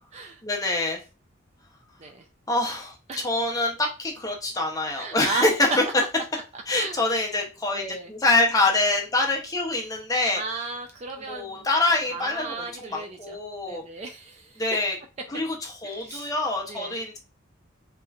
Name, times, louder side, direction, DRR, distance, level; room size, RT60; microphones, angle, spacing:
voice 1, 0.4-1.0 2.5-5.5 6.7-10.4 11.3-13.8 14.6-15.0 15.3-17.2, left 2 dB, 15° left, 1 dB, 0.6 m, -25 dB
voice 2, 5.0-5.5 6.5-7.0 7.7-8.1 10.3-11.7 12.1-13.4 13.6-14.6 15.8-16.3 16.7-16.9, right 3 dB, 30° right, 5 dB, 0.3 m, -35 dB
3.2 x 2.9 x 2.3 m, 0.31 s
head